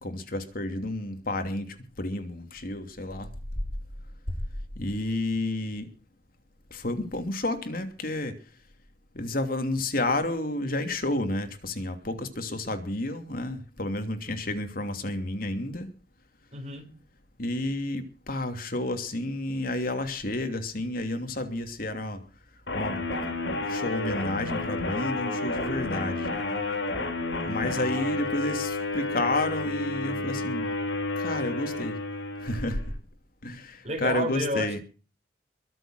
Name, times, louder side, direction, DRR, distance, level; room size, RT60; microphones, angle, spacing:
voice 1, 0.0-3.3 4.7-5.9 6.7-8.4 9.1-15.9 17.4-22.2 22.7-23.1 23.5-26.3 27.4-30.7 31.2-32.0 32.4-32.8 33.4-34.8, left 1 dB, 55° left, 2.9 m, -31 dB
voice 2, 16.5-17.0 33.8-34.8, right 1 dB, 40° right, 5.1 m, -31 dB
sound 1, 22.7-32.9, left 2 dB, 75° left, 4.9 m, -31 dB
23.0 x 7.7 x 6.5 m
head